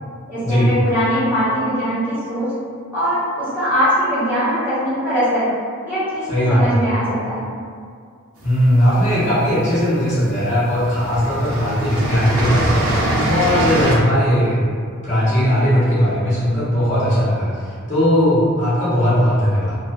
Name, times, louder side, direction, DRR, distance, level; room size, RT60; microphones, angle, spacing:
voice 1, 0.3-2.5 2.9-5.5 5.8-7.5, equal, 10° right, -14 dB, 1.0 m, -21 dB
voice 2, 6.3-6.8 8.4-12.9 13.2-14.6 15.0-19.8, equal, 40° left, -11 dB, 0.8 m, -18 dB
sound 1, 8.6-9.4 10.3-10.4 10.7-13.9, right 1 dB, 80° right, 0.5 m, -22 dB
2.5 x 2.2 x 2.2 m, 2.1 s
head